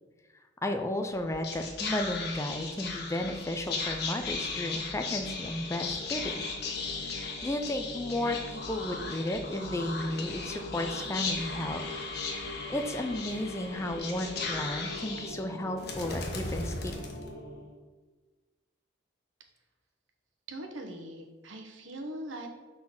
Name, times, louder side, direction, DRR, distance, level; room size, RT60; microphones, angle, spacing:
voice 1, 0.6-6.3 7.0-11.8 12.3-16.7, left 1 dB, 15° left, 5 dB, 0.4 m, -33 dB
Whispering, 1.1-17.7, left 3 dB, 50° left, 1.1 m, -36 dB
voice 2, 20.5-22.5, right 1 dB, 75° right, 3 dB, 1.0 m, -41 dB
6.3 x 3.9 x 5.9 m, 1.3 s
head